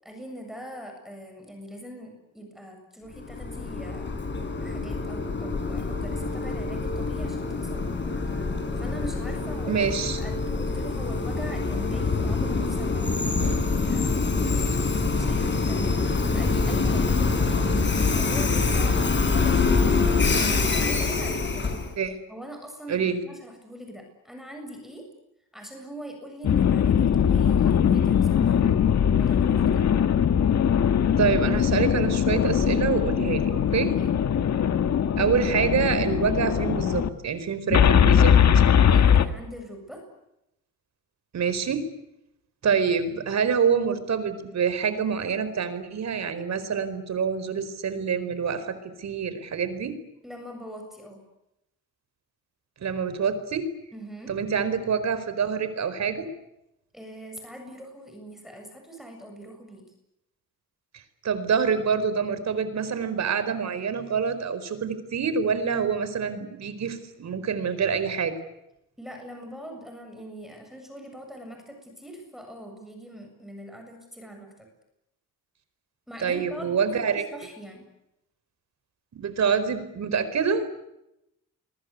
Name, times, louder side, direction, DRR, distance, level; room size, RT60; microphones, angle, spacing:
voice 1, 0.0-4.1 4.6-8.0 8.4-8.5 8.7-9.9 10.2-13.1 13.4-14.2 14.4-21.7 22.0-25.1 25.5-29.8 33.7-34.1 38.8-40.1 50.2-51.2 53.9-54.4 56.9-59.9 69.0-74.7 76.1-77.8, right 1 dB, ahead, 3 dB, 7.4 m, -42 dB
Train, 3.2-21.9, left 4 dB, 35° left, 5.5 m, -25 dB
voice 2, 9.7-10.2 14.4-14.5 22.0-22.2 22.9-23.2 31.2-33.9 35.2-38.6 41.3-41.9 42.6-50.0 52.8-53.7 54.3-56.3 60.9-68.3 76.2-77.2 79.1-80.7, right 6 dB, 55° right, 12 dB, 4.5 m, -26 dB
sound 1, 26.4-37.1 37.7-39.3, left 8 dB, 55° left, 1.9 m, -21 dB
28.5 x 23.0 x 8.4 m, 0.87 s
cardioid pair, 110°, 33 cm